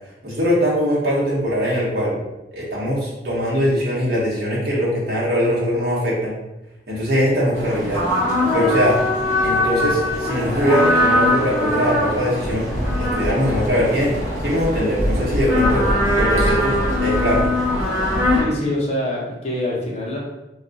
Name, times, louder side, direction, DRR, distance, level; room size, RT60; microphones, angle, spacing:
voice 1, 0.2-2.2 2.5-6.3 6.9-8.0 8.5-9.0 9.4-12.7 13.0-17.4, equal, 55° right, -6 dB, 1.1 m, -21 dB
sound 1, 7.5-18.4, left 1 dB, 15° left, 1.2 m, -21 dB
voice 2, 18.4-20.2, left 1 dB, 35° left, -3 dB, 0.7 m, -25 dB
2.3 x 2.3 x 3.9 m, 0.97 s
head